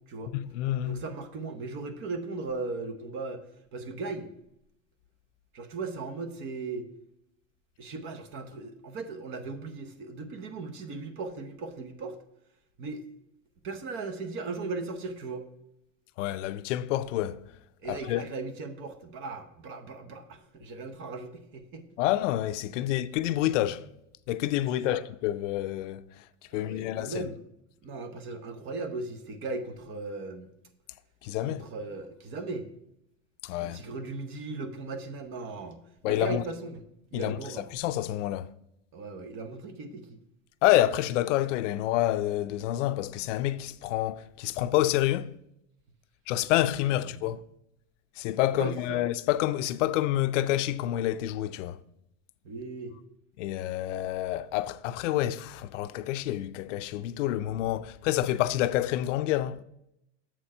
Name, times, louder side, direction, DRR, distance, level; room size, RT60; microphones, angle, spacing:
voice 1, 0.3-1.0 16.2-17.4 17.9-18.2 22.0-23.9 24.3-26.0 26.5-27.3 31.2-31.7 33.4-33.8 36.0-36.4 37.1-38.5 40.6-45.3 46.3-47.4 48.2-51.8 53.4-59.6, left 14 dB, 80° left, 0.5 m, -28 dB
voice 2, 0.8-3.4 3.7-4.3 5.5-6.9 7.8-12.2 12.8-13.0 13.6-15.4 17.8-21.9 22.8-22.9 24.7-25.0 26.5-27.4 27.8-30.5 31.5-32.7 33.6-36.8 37.1-37.7 38.9-40.2 47.0-47.2 48.5-49.0 52.4-52.9, right 3 dB, 35° right, 0.8 m, -37 dB
7.6 x 4.3 x 5.4 m
supercardioid pair, 150°, 36 cm